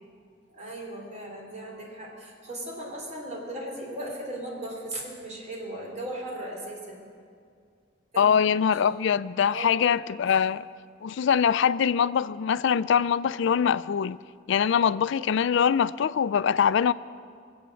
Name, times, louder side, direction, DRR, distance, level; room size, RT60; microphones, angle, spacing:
voice 1, 0.5-7.0 8.1-9.1 9.5-9.9 14.7-14.8, right 1 dB, 35° right, -1 dB, 3.4 m, -37 dB
voice 2, 8.2-10.6 11.0-14.2 14.5-16.9, left 7 dB, 70° left, 16 dB, 0.4 m, -23 dB
22.5 x 8.1 x 7.7 m, 2.2 s
head